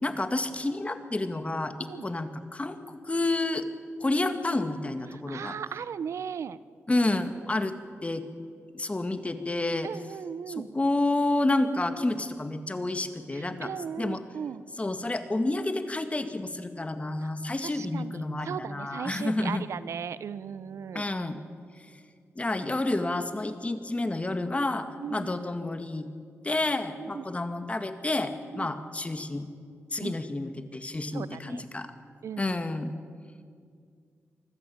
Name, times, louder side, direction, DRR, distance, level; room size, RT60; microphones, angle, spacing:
voice 1, 0.0-3.7 4.0-5.6 6.9-7.7 8.0-8.2 8.7-9.9 10.5-13.7 14.0-14.2 14.8-19.6 20.9-21.4 22.4-26.1 26.4-29.5 29.9-31.9 32.4-32.9, left 2 dB, 25° left, 9 dB, 1.9 m, -29 dB
voice 2, 5.1-6.6 9.8-10.7 13.3-14.6 17.2-17.3 17.6-21.0 25.0-25.3 27.0-27.2 28.5-28.7 30.0-30.2 31.1-31.6 32.2-32.5, right 7 dB, 80° right, 16 dB, 0.6 m, -37 dB
24.5 x 14.5 x 8.7 m, 2.2 s
cardioid pair, 65°, 5 cm